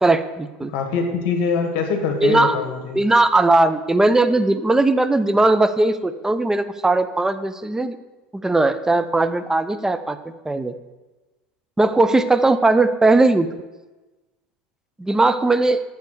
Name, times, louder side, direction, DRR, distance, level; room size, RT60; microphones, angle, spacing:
voice 1, 0.0-0.7 2.2-2.6 2.9-8.0 8.3-10.2 10.5-10.7 11.8-13.5 15.0-15.8, right 2 dB, 10° right, 11 dB, 0.5 m, -18 dB
voice 2, 0.7-3.0, left 5 dB, 70° left, 4 dB, 1.3 m, -23 dB
7.4 x 3.9 x 6.6 m, 1.2 s
hypercardioid pair, 95°, 5 cm